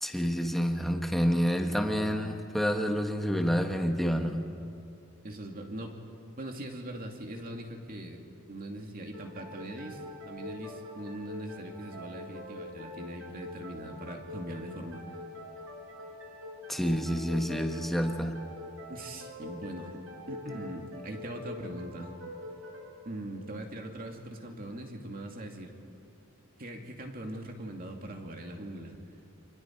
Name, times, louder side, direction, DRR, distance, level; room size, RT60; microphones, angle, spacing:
voice 1, 0.0-4.5 16.7-18.4, equal, ahead, 3 dB, 1.4 m, -28 dB
voice 2, 5.2-5.9 6.4-8.2 8.5-10.0 10.3-15.0 18.9-22.1 23.0-25.7 26.6-29.0, right 1 dB, 40° right, 2 dB, 2.4 m, -41 dB
sound 1, 9.1-24.5, left 2 dB, 70° right, 4.8 m, -45 dB
30.0 x 27.0 x 4.6 m, 2.6 s
head